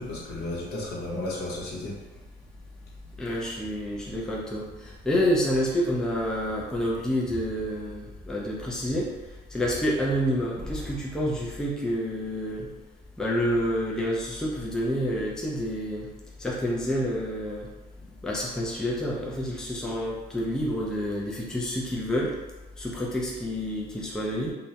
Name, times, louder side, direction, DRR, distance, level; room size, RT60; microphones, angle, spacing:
voice 1, 0.0-2.0, left 2 dB, 70° left, -5 dB, 0.8 m, -33 dB
voice 2, 3.2-9.1 9.5-12.7 13.2-16.1 16.4-17.7 18.2-22.3 22.8-24.5, equal, 5° left, -4 dB, 0.4 m, -28 dB
2.2 x 2.0 x 2.7 m, 1.1 s
cardioid pair, 110°, 17 cm